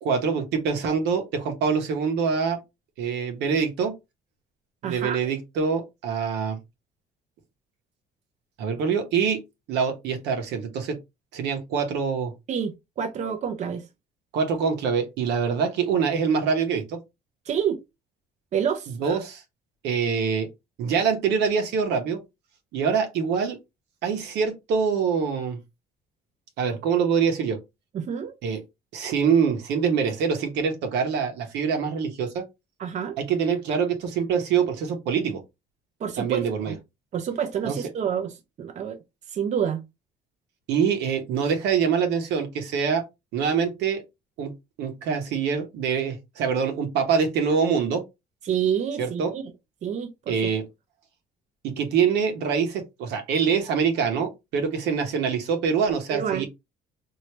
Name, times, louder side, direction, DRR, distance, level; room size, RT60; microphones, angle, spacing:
voice 1, 0.0-2.6 3.0-3.9 4.8-6.6 8.6-9.4 9.7-11.0 11.3-12.3 14.3-17.0 19.0-19.4 19.8-20.5 20.8-22.2 22.7-23.6 24.0-25.6 26.6-27.6 28.4-28.6 28.9-32.4 33.2-35.4 36.2-36.7 37.6-37.8 40.7-43.0 43.3-44.0 44.4-44.5 44.8-48.0 49.0-49.3 50.3-50.6 51.6-56.5, right 6 dB, 85° right, 1.1 m, -24 dB
voice 2, 4.8-5.2 12.5-13.9 17.5-17.8 18.5-19.2 27.9-28.3 32.8-33.2 36.0-36.8 37.1-39.0 39.3-39.8 48.4-49.4 49.8-50.5 56.1-56.4, right 8 dB, 45° right, 0.6 m, -28 dB
3.2 x 2.8 x 2.9 m
cardioid pair, 110°, 17 cm